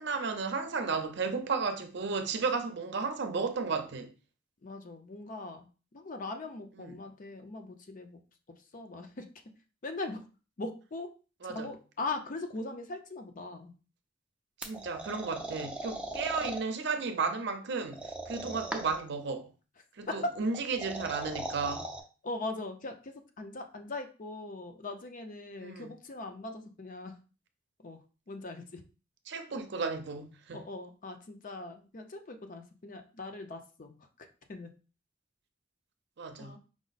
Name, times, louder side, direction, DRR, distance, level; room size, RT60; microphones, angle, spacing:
voice 1, 0.0-4.1 6.8-6.9 11.4-11.7 14.6-19.5 20.0-21.9 25.6-25.9 29.3-30.6 36.2-36.5, right 4 dB, 65° right, 0.6 m, -33 dB
voice 2, 4.6-5.7 5.9-8.2 8.6-9.3 9.8-10.2 10.6-11.1 11.4-13.7 22.2-27.2 27.8-28.8 30.5-34.7 36.4-36.6, left 2 dB, 45° left, 0.6 m, -41 dB
sound 1, 14.6-16.6 17.9-19.1 20.5-22.0, right 1 dB, 5° right, 0.5 m, -39 dB
4.8 x 2.1 x 4.0 m
head